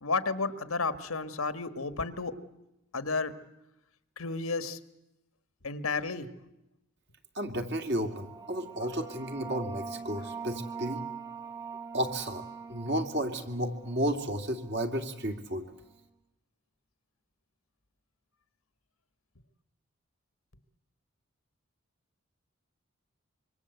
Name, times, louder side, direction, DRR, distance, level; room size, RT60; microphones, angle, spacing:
voice 1, 0.0-2.3 2.9-3.3 4.2-4.8 5.6-6.3, left 4 dB, 90° left, 13 dB, 1.5 m, -32 dB
voice 2, 7.3-11.0 11.9-12.4 12.7-15.6, equal, 50° right, 5 dB, 2.6 m, -32 dB
sound 1, 7.9-15.1, right 5 dB, 15° right, 1.1 m, -43 dB
25.5 x 24.0 x 8.1 m, 0.90 s
head